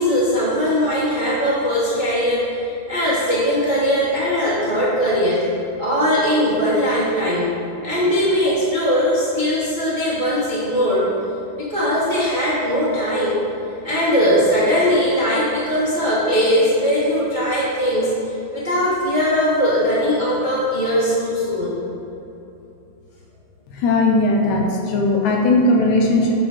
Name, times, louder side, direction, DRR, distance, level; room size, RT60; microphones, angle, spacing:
voice 1, 0.0-5.4 5.8-7.5 7.8-11.1 11.5-13.4 13.8-18.1 18.5-21.7, equal, 85° right, -9 dB, 0.4 m, -20 dB
voice 2, 23.8-26.3, left 2 dB, 75° left, 0 dB, 2.1 m, -17 dB
8.9 x 4.4 x 4.9 m, 2.9 s
omnidirectional pair, 3.7 m